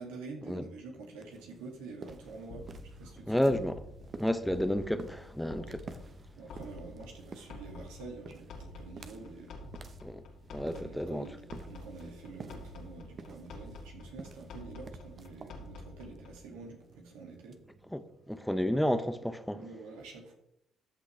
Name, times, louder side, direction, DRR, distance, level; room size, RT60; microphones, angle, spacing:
voice 1, 0.0-2.7 3.0-3.3 6.4-9.7 10.7-17.6 19.5-20.3, right 3 dB, 90° right, 2.3 m, -47 dB
sound 1, 1.1-18.6, right 4 dB, 45° right, 1.0 m, -52 dB
sound 2, 2.1-16.5, left 2 dB, 70° left, 2.3 m, -49 dB
voice 2, 3.3-3.8 4.2-6.0 10.0-10.2 10.5-11.3 17.9-19.7, equal, 5° left, 0.8 m, -31 dB
13.5 x 6.2 x 3.4 m
supercardioid pair, 65°, 0 cm